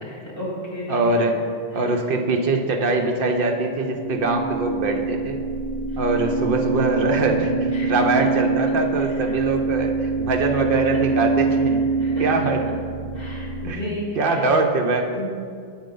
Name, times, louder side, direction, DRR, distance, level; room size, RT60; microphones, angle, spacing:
voice 1, 0.0-1.0 7.7-8.0 10.9-11.0 12.0-12.5 13.1-14.3 15.1-15.3, left 1 dB, 60° left, -5 dB, 2.2 m, -33 dB
voice 2, 0.9-1.4 1.7-5.4 6.0-12.6 13.6-15.1, right 3 dB, 60° right, 3 dB, 0.9 m, -23 dB
sound 1, 3.6-13.7, right 4 dB, 10° left, 0.8 m, -25 dB
7.9 x 4.4 x 5.3 m, 2.2 s
omnidirectional pair, 1.0 m